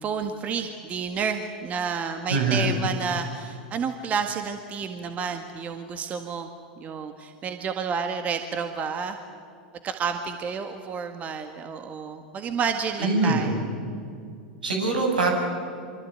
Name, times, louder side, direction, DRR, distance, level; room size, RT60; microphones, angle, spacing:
voice 1, 0.0-6.5 6.8-9.2 9.8-13.7, right 6 dB, 30° right, 7 dB, 1.9 m, -30 dB
voice 2, 2.3-2.7 13.0-13.5 14.6-15.3, right 3 dB, 75° right, 2 dB, 7.5 m, -23 dB
26.5 x 25.0 x 9.2 m, 2.4 s
figure-of-eight pair, 90°, 5 cm